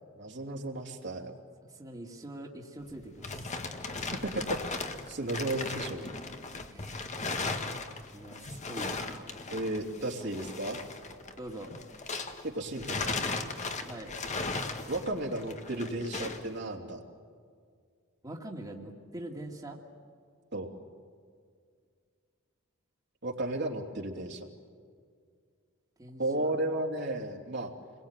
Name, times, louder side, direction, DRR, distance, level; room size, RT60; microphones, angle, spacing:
voice 1, 0.2-1.3 4.2-6.1 9.5-10.8 12.4-13.4 14.9-17.0 20.5-20.7 23.2-24.5 26.2-27.7, right 1 dB, 55° right, 1 dB, 3.0 m, -34 dB
voice 2, 1.7-3.5 6.7-6.9 8.1-9.4 11.4-11.7 13.8-14.1 18.2-19.8 26.0-26.5, right 1 dB, 20° right, -1 dB, 2.3 m, -43 dB
sound 1, 2.8-12.5 12.8-16.5, left 3 dB, 35° left, 1.8 m, -37 dB
28.5 x 22.0 x 9.1 m, 2.1 s
head